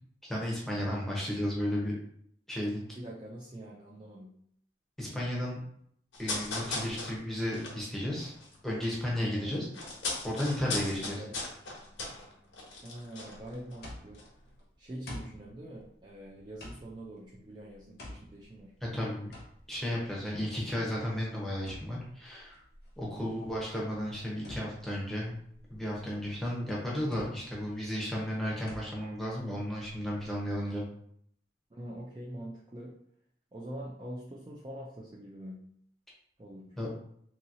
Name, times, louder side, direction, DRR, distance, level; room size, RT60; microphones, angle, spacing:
voice 1, 0.2-1.9 2.5-2.8 5.0-5.6 6.2-8.3 8.6-9.7 10.2-11.2 18.8-19.3 19.7-22.6 23.0-25.3 25.7-30.8 36.8-36.9, equal, ahead, -5 dB, 0.7 m, -33 dB
voice 2, 3.0-4.3 9.3-9.7 11.0-11.3 12.8-14.2 14.8-18.7 23.1-23.4 31.7-32.9 33.5-35.6 36.4-36.7, right 1 dB, 25° right, -4 dB, 0.4 m, -44 dB
sound 1, 6.1-9.0 9.3-13.9 14.1-14.3, left 3 dB, 90° left, 0.9 m, -38 dB
sound 2, 13.3-30.5, left 1 dB, 55° left, 0.7 m, -51 dB
2.8 x 2.7 x 2.6 m, 0.67 s
head